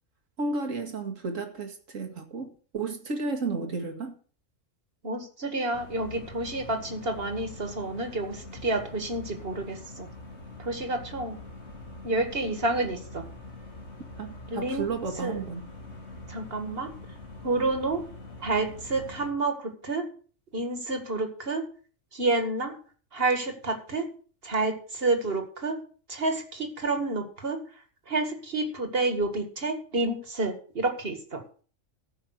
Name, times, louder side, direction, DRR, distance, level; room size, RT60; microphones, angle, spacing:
voice 1, 0.4-4.2 14.2-15.7, right 3 dB, 75° right, 2.3 m, -32 dB
voice 2, 5.0-10.1 10.6-11.4 12.0-13.2 14.5-14.9 15.2-15.5 16.3-16.9 17.4-18.0 18.4-20.1 20.5-21.6 22.1-22.7 23.1-24.1 24.4-25.8 26.1-27.6 28.1-31.4, right 2 dB, 45° right, 2.2 m, -29 dB
sound 1, 5.7-19.3, left 2 dB, 55° left, 2.3 m, -44 dB
14.5 x 5.6 x 6.5 m
omnidirectional pair, 1.4 m